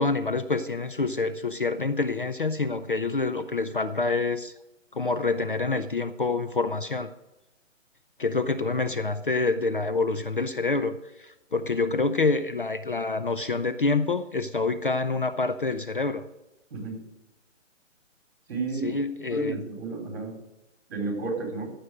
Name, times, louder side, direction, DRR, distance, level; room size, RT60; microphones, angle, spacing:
voice 1, 0.0-4.5 4.9-7.1 8.2-16.2 18.8-19.6, left 3 dB, 45° left, 12 dB, 0.4 m, -27 dB
voice 2, 18.5-19.0 19.3-20.4 20.9-21.7, right 3 dB, 50° right, 1 dB, 4.6 m, -32 dB
14.0 x 6.2 x 6.4 m, 0.98 s
hypercardioid pair, 175°, 38 cm